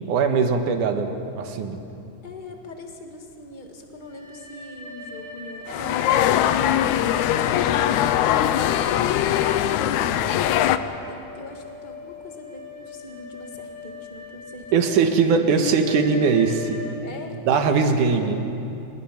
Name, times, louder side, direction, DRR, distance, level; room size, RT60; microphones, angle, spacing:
voice 1, 0.1-1.8 14.7-16.8 17.5-18.4, right 5 dB, 75° right, 6 dB, 2.9 m, -20 dB
voice 2, 2.2-6.3 11.1-14.8 15.2-15.5 17.0-18.5, left 2 dB, 20° left, 2 dB, 1.6 m, -41 dB
sound 1, 3.9-17.0, left 2 dB, 20° right, 2.2 m, -41 dB
sound 2, 5.7-10.8, left 11 dB, 75° left, 2.0 m, -21 dB
26.5 x 21.0 x 5.9 m, 2.8 s
omnidirectional pair, 3.6 m